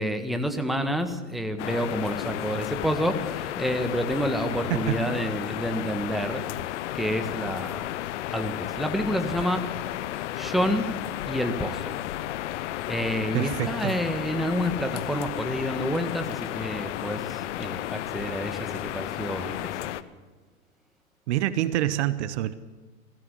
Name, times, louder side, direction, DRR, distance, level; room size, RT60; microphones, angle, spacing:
voice 1, 0.0-6.4 6.9-7.9 8.3-9.7 10.3-10.9 11.2-11.9 12.9-20.0, equal, ahead, 6 dB, 1.6 m, -29 dB
sound 1, 1.6-20.0, left 13 dB, 60° left, 1.0 m, -33 dB
voice 2, 4.7-5.0 13.3-13.9 21.3-22.5, right 13 dB, 55° right, 14 dB, 1.1 m, -26 dB
20.5 x 16.0 x 8.2 m, 1.3 s
hypercardioid pair, 115°, 41 cm